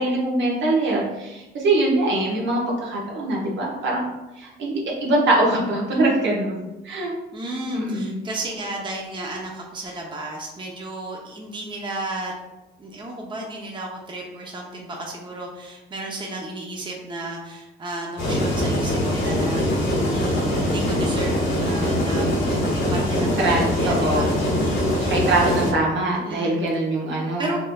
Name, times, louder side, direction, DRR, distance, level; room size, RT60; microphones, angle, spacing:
voice 1, 0.0-4.0 4.4-7.1 7.7-8.2 23.4-24.3 25.0-27.5, right 2 dB, 65° right, -3 dB, 1.1 m, -23 dB
voice 2, 7.3-12.3 12.8-25.3 26.1-26.6 27.4-27.6, right 2 dB, 25° right, -1 dB, 0.7 m, -33 dB
sound 1, 18.2-25.7, left 1 dB, 70° left, 1.2 m, -22 dB
5.3 x 2.6 x 2.3 m, 1.0 s
cardioid pair, 90°, 20 cm